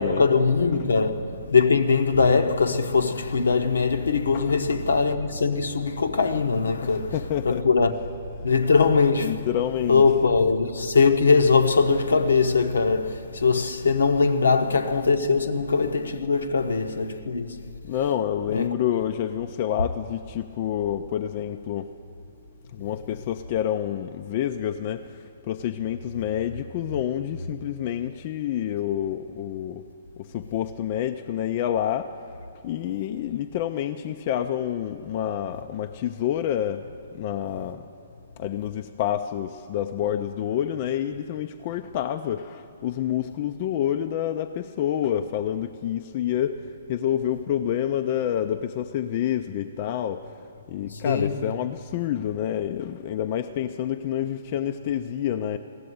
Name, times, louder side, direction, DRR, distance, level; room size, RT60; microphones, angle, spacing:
voice 1, 0.0-7.2 7.4-7.9 8.4-9.5 9.9-17.6 18.5-18.7 50.9-51.4, left 4 dB, 70° left, 0.8 m, -21 dB
voice 2, 6.8-7.6 8.4-8.5 9.2-10.0 17.9-21.9 22.7-25.0 25.4-29.8 30.2-32.1 32.6-36.9 37.1-37.8 38.4-46.6 46.9-50.3 50.7-55.6, left 10 dB, 40° left, 0.4 m, -28 dB
16.0 x 7.7 x 9.2 m
figure-of-eight pair, 125°, 0 cm